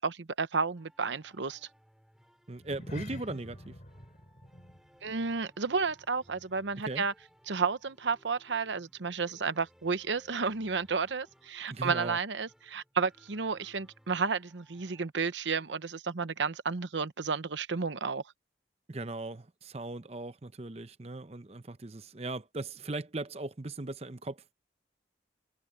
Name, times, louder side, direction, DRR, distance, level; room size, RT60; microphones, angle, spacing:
voice 1, 0.0-1.6 5.0-7.1 7.5-18.2, right 5 dB, 80° right, 0.9 m, -32 dB
sound 1, 0.8-15.1, equal, 5° right, 4.6 m, -64 dB
voice 2, 2.5-3.8 6.8-7.0 11.7-12.2 18.9-24.6, right 2 dB, 35° right, 0.7 m, -38 dB
sound 2, 2.6-7.2 7.5-7.8 8.2-8.3, left 1 dB, 40° left, 5.7 m, -48 dB
head